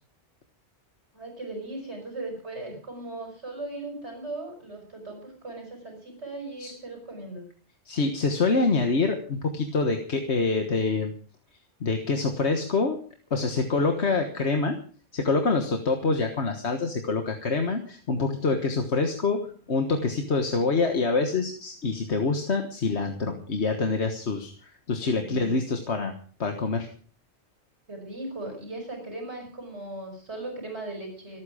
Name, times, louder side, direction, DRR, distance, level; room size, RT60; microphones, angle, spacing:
voice 1, 1.1-7.5 14.2-14.4 25.1-25.6 27.9-31.4, right 2 dB, 75° right, 2 dB, 6.0 m, -38 dB
voice 2, 7.9-11.1 11.8-13.0 13.3-14.8 15.1-26.1 26.4-26.9, left 3 dB, 70° left, 5 dB, 1.8 m, -26 dB
25.5 x 9.4 x 5.0 m, 0.42 s
omnidirectional pair, 1.2 m